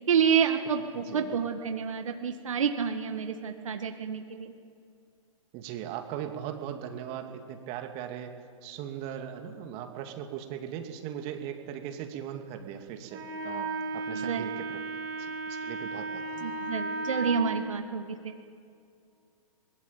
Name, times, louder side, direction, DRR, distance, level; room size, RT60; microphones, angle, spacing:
voice 1, 0.1-4.5 14.1-14.5 16.4-18.3, right 7 dB, 70° right, 5 dB, 1.8 m, -29 dB
voice 2, 0.9-1.3 5.5-8.3 8.6-14.8 15.2-16.6, right 9 dB, 35° right, 5 dB, 2.4 m, -39 dB
Wind instrument woodwind instrument, 13.1-17.4, right 3 dB, 50° right, 4.0 m, -34 dB
23.0 x 21.0 x 8.7 m, 2.5 s
figure-of-eight pair, 115°, 18 cm